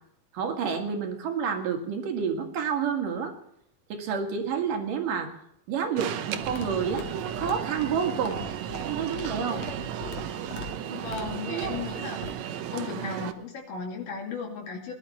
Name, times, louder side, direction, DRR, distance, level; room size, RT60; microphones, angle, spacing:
voice 1, 0.3-3.3 3.9-5.3 5.7-8.4 8.9-9.7, right 6 dB, 90° right, 3 dB, 3.6 m, -29 dB
Alarm, 6.0-13.3, right 10 dB, 70° right, 1.9 m, -34 dB
sound 1, 6.4-12.3, left 5 dB, 55° left, 2.5 m, -41 dB
voice 2, 10.9-12.2 12.7-14.9, left 5 dB, 85° left, 0 dB, 4.1 m, -35 dB
19.5 x 11.5 x 4.3 m, 0.74 s
omnidirectional pair, 3.7 m